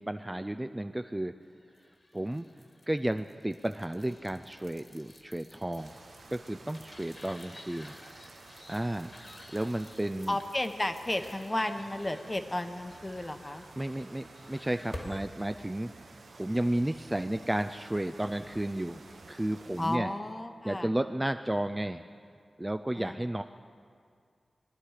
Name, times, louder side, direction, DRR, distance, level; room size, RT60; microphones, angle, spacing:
voice 1, 0.0-1.3 2.1-2.5 2.9-6.0 6.3-7.9 8.7-9.1 9.5-10.4 13.8-15.9 16.4-19.0 19.3-20.1 20.6-22.0 22.6-23.4, right 1 dB, 15° right, 8 dB, 0.4 m, -32 dB
sound 1, 1.7-15.3, left 1 dB, 40° left, 1.5 m, -51 dB
sound 2, 5.8-20.0, right 3 dB, 80° right, 0.9 m, -53 dB
voice 2, 10.3-13.7 19.8-20.9 22.9-23.4, left 1 dB, 20° left, 7 dB, 0.9 m, -33 dB
23.0 x 11.5 x 4.8 m, 2.2 s
wide cardioid pair, 100°, 0 cm